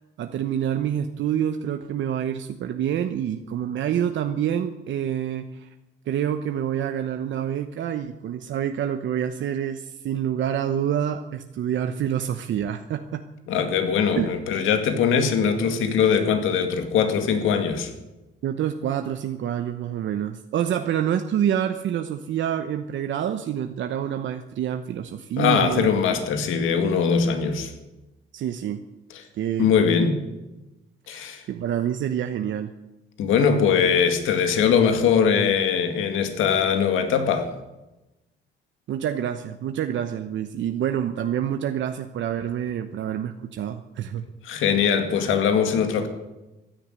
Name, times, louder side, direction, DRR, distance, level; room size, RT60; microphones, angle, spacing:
voice 1, 0.2-5.7 6.1-13.2 14.1-14.3 18.4-25.9 28.3-28.8 29.4-29.7 31.1-32.7 38.9-44.2, right 9 dB, 70° right, 1.0 m, -27 dB
voice 2, 13.5-17.9 25.4-27.7 29.6-30.2 31.1-31.4 33.2-37.5 44.4-46.1, left 6 dB, 85° left, 2.1 m, -21 dB
15.5 x 10.5 x 9.0 m
cardioid pair, 90°, 20 cm